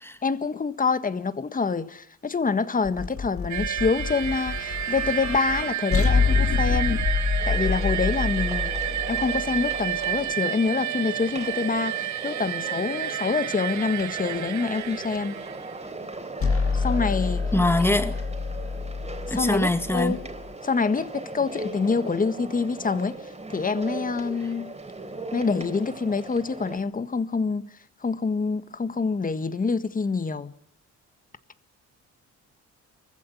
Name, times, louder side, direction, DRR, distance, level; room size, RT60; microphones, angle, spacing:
voice 1, 0.2-7.0 7.5-8.8 9.1-15.4 16.7-17.5 19.2-20.3 20.6-23.2 23.5-24.7 25.3-27.7 28.0-30.5, left 4 dB, 25° left, 1.6 m, -26 dB
sound 1, 2.8-10.2 16.4-20.5, left 5 dB, 45° left, 2.0 m, -27 dB
sound 2, 3.5-15.9, right 11 dB, 70° right, 1.1 m, -31 dB
sound 3, 7.4-26.8, right 2 dB, 20° right, 3.6 m, -38 dB
voice 2, 17.5-18.2 19.3-20.2, left 1 dB, 10° left, 2.1 m, -23 dB
24.0 x 15.5 x 9.8 m
cardioid pair, 90°, 30 cm